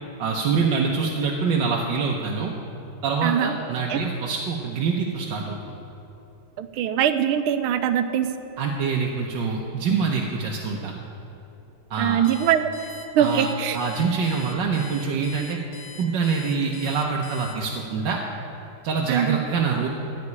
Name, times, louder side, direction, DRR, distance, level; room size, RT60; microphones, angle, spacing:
voice 1, 0.2-2.5 3.0-5.6 8.6-10.9 11.9-12.2 13.2-13.5 13.7-15.6 16.0-18.2 18.8-19.9, right 5 dB, 65° right, -1 dB, 1.5 m, -25 dB
voice 2, 3.2-3.6 3.9-4.0 6.6-8.3 12.0-12.7 13.1-13.8 19.1-19.4, right 9 dB, 85° right, 10 dB, 1.5 m, -22 dB
Alarm, 12.2-17.9, left 4 dB, 90° left, 2.2 m, -43 dB
14.5 x 5.4 x 9.6 m, 3.0 s
omnidirectional pair, 2.3 m